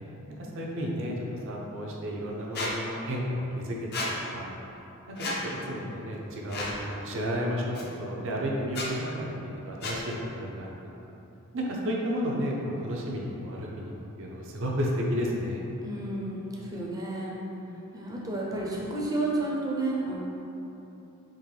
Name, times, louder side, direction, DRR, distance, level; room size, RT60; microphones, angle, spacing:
voice 1, 0.4-1.2 1.5-4.5 5.1-10.9 11.5-13.9 14.2-15.6, equal, 60° right, -2 dB, 0.6 m, -32 dB
Squeak, 2.5-2.7 3.9-4.1 5.2-5.4 6.5-6.8 7.7-7.8 8.7-8.9 9.8-10.0, left 2 dB, 50° left, 0.5 m, -32 dB
voice 2, 15.8-17.4 17.9-20.2, right 2 dB, 15° right, -4 dB, 0.5 m, -31 dB
3.8 x 3.0 x 3.2 m, 3.0 s
head